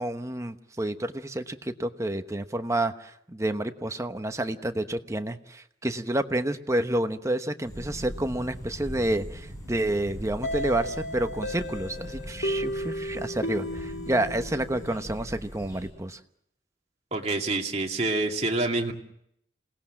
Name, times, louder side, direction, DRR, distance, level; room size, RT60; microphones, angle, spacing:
voice 1, 0.0-16.2, right 1 dB, 15° right, 8 dB, 1.0 m, -29 dB
sound 1, 7.6-15.9, equal, 20° left, 7.7 m, -41 dB
sound 2, 10.4-15.1, equal, 70° left, 2.0 m, -34 dB
voice 2, 17.1-18.9, right 2 dB, 40° right, 1 dB, 2.4 m, -27 dB
27.5 x 18.5 x 7.5 m, 0.74 s
head